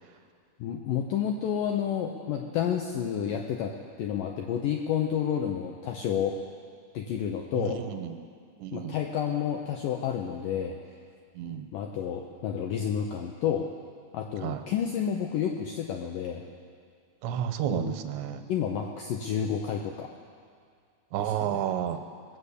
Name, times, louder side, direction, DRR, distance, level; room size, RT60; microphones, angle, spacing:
voice 1, 0.6-6.4 6.9-7.8 8.7-10.8 11.7-13.7 14.1-16.4 17.7-17.9 18.5-20.1 21.2-21.6, left 8 dB, 85° left, 2 dB, 1.9 m, -30 dB
voice 2, 7.5-8.2 8.6-9.0 11.4-11.7 14.4-14.6 17.2-18.4 21.1-22.0, right 10 dB, 90° right, 8 dB, 3.1 m, -31 dB
20.0 x 7.1 x 8.3 m, 2.2 s
omnidirectional pair, 4.9 m